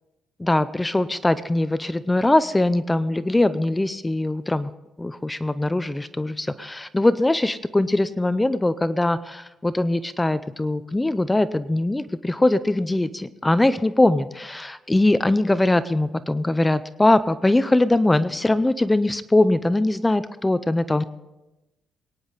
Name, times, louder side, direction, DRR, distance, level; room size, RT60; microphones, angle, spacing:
voice 1, 0.4-4.7 5.0-21.0, left 2 dB, 15° left, 14 dB, 0.5 m, -21 dB
23.0 x 9.9 x 4.1 m, 0.99 s
cardioid pair, 90°, 0 cm